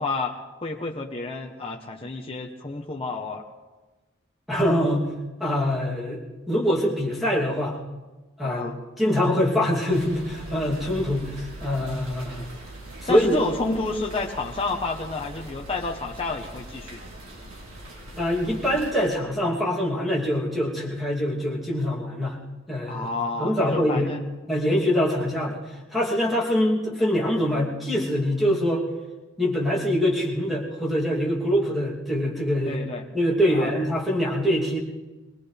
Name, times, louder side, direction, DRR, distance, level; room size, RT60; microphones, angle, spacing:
voice 1, 0.0-3.4 8.4-8.8 13.1-17.0 22.9-24.2 32.6-33.1 33.5-33.7, left 3 dB, 25° left, -1 dB, 1.0 m, -30 dB
voice 2, 4.5-5.1 5.4-6.2 6.5-7.8 8.4-12.4 13.0-13.4 18.2-22.4 22.7-23.1 23.3-24.1 24.5-25.6 25.9-28.8 29.4-32.8 33.1-34.8, equal, ahead, -5 dB, 2.9 m, -24 dB
sound 1, 9.9-18.9, right 2 dB, 85° right, 3.4 m, -41 dB
23.0 x 18.0 x 3.4 m, 1.2 s
head